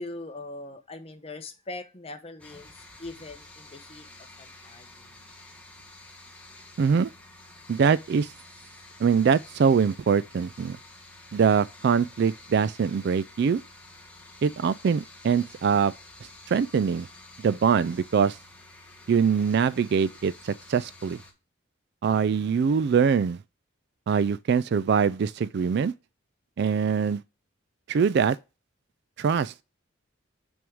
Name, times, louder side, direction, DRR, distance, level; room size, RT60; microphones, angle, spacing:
voice 1, 0.0-2.7 3.0-4.1 4.4-5.2, left 2 dB, 30° left, 0.8 m, -41 dB
sound 1, 2.4-21.3, left 2 dB, 5° left, 1.2 m, -50 dB
voice 2, 6.8-7.1 7.7-8.3 9.0-10.8 11.3-13.6 14.4-15.9 16.5-17.1 17.4-18.4 19.1-21.2 22.0-23.4 24.1-25.9 26.6-27.2 27.9-28.4 29.2-29.5, right 6 dB, 55° right, 0.3 m, -23 dB
6.1 x 3.6 x 6.1 m
head